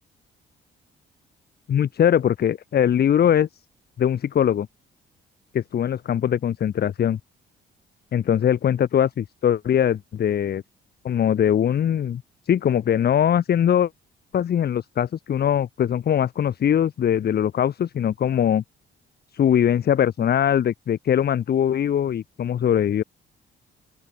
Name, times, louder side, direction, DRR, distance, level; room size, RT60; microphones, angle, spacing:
voice 1, 1.7-3.5 4.0-4.7 5.5-7.2 8.1-10.6 11.0-13.9 14.3-18.6 19.3-23.0, left 9 dB, 55° left, 1.1 m, -21 dB
open air
cardioid pair, 90°, 20 cm